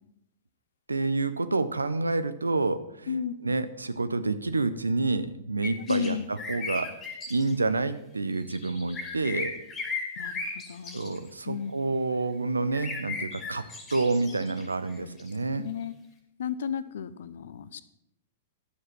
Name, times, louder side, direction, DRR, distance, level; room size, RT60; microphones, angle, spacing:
voice 1, 0.9-3.2 3.4-7.0 7.3-9.5 10.9-15.7, right 3 dB, 85° right, 13 dB, 0.8 m, -28 dB
voice 2, 3.1-3.6 5.9-6.2 10.2-11.7 15.5-15.9 16.4-17.8, left 8 dB, 65° left, 15 dB, 0.7 m, -34 dB
sound 1, 5.6-6.1 6.4-7.5 8.4-11.3 12.7-15.3, left 4 dB, 20° left, 3.0 m, -36 dB
11.5 x 7.6 x 6.0 m, 0.80 s
figure-of-eight pair, 105°, 0 cm